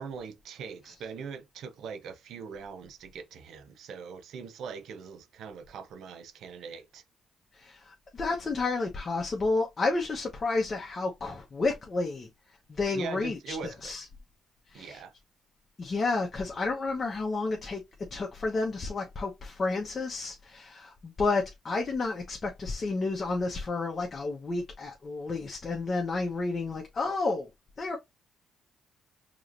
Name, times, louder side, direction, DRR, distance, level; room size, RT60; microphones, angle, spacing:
voice 1, 0.0-7.0 12.9-13.9 14.7-15.1, right 5 dB, 75° right, 0.7 m, -41 dB
voice 2, 7.5-12.3 12.7-14.1 14.7-15.0 15.8-17.8 18.1-27.5 27.8-28.0, left 3 dB, 35° left, 1.0 m, -31 dB
4.9 x 3.0 x 2.6 m
cardioid pair, 90°, 0 cm